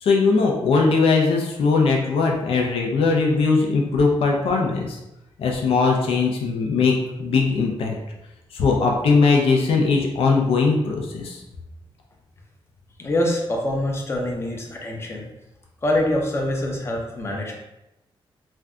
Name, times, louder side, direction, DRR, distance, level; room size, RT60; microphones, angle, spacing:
voice 1, 0.0-5.0 5.4-7.9 8.5-11.4, left 4 dB, 80° left, 0 dB, 0.5 m, -20 dB
voice 2, 13.0-15.2 15.8-17.5, left 1 dB, 25° left, 0 dB, 0.6 m, -24 dB
2.6 x 2.2 x 3.5 m, 0.93 s
wide cardioid pair, 140°, 10 cm